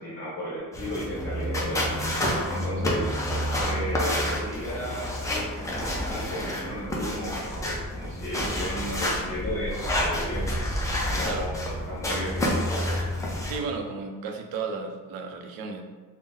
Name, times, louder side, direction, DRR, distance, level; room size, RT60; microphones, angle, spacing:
voice 1, 0.0-2.0 2.5-3.1 3.6-7.7 7.9-12.6, equal, 35° left, -8 dB, 0.9 m, -35 dB
sound 1, 0.7-13.6, equal, 10° left, 0.3 m, -29 dB
sound 2, 1.0-7.1, right 1 dB, 15° right, 0.7 m, -43 dB
voice 2, 13.5-15.8, right 5 dB, 85° right, 5 dB, 0.5 m, -33 dB
3.6 x 2.1 x 2.7 m, 1.4 s
cardioid pair, 180°, 34 cm